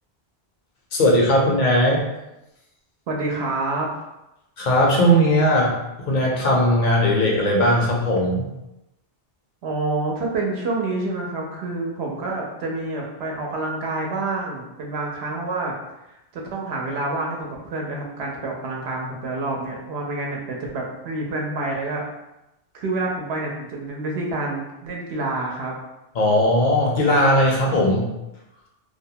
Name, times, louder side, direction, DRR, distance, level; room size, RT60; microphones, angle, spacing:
voice 1, 0.9-2.0 4.6-5.7 6.1-8.5 26.2-28.1, equal, 55° left, -2 dB, 0.7 m, -18 dB
voice 2, 3.1-3.9 9.6-15.7 16.3-22.0 22.7-25.7, right 2 dB, 80° right, -1 dB, 0.9 m, -28 dB
2.5 x 2.1 x 2.7 m, 0.93 s
omnidirectional pair, 1.1 m